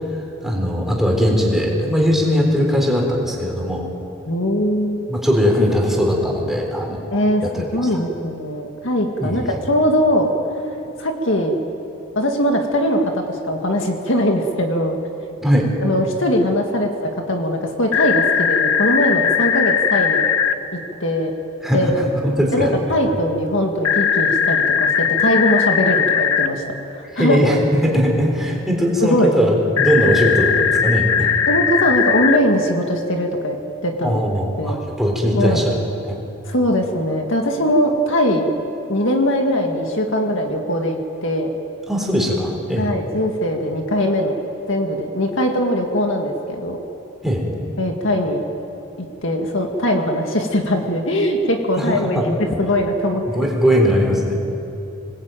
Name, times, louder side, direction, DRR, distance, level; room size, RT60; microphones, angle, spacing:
voice 1, 0.4-3.8 5.1-7.0 7.4-7.7 9.2-9.4 15.4-15.7 21.6-22.7 27.2-27.6 27.8-31.3 34.0-36.2 41.9-42.9 47.2-47.4 51.8-52.2 53.3-54.4, equal, ahead, -1 dB, 3.9 m, -19 dB
voice 2, 4.3-5.1 7.1-7.4 7.7-10.3 11.0-11.6 12.2-15.0 15.8-20.3 21.0-21.3 21.7-22.0 22.5-26.6 26.9-27.6 29.0-29.3 31.5-33.6 33.8-34.2 34.6-34.8 35.4-35.6 36.5-38.5 38.9-41.5 42.8-44.3 44.7-46.8 47.8-48.4 49.2-53.5, equal, 55° left, 3 dB, 2.1 m, -20 dB
sound 1, 17.9-20.5 23.8-26.5 29.8-32.4, left 7 dB, 75° left, 1.2 m, -18 dB
27.0 x 20.0 x 9.1 m, 3.0 s
head